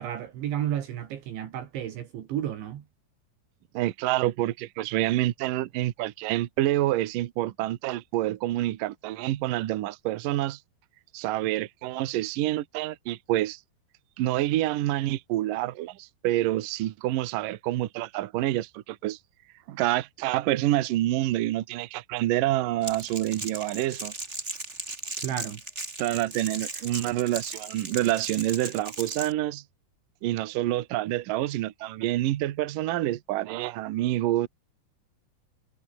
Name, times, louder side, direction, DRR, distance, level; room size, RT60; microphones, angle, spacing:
voice 1, 0.0-2.8 25.2-25.6, right 11 dB, 70° right, 4.3 m, -32 dB
voice 2, 3.7-10.6 11.1-13.6 14.2-19.2 19.7-24.1 26.0-29.6 30.2-34.5, right 15 dB, 85° right, 1.9 m, -27 dB
Crackle, 22.8-29.3, right 2 dB, 15° right, 3.2 m, -37 dB
omnidirectional pair, 5.8 m